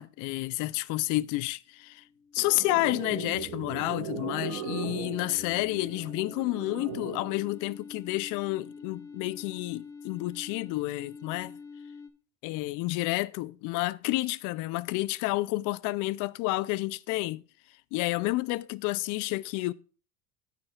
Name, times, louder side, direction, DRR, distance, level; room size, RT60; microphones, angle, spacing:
voice 1, 0.0-2.0 2.3-11.6 12.4-17.4 17.9-19.7, left 20 dB, 55° left, 0.4 m, -30 dB
sound 1, 1.9-12.1, left 5 dB, 5° left, 0.6 m, -47 dB
sound 2, 2.4-7.4, right 9 dB, 70° right, 1.3 m, -38 dB
16.5 x 5.8 x 2.3 m
supercardioid pair, 110°, 39 cm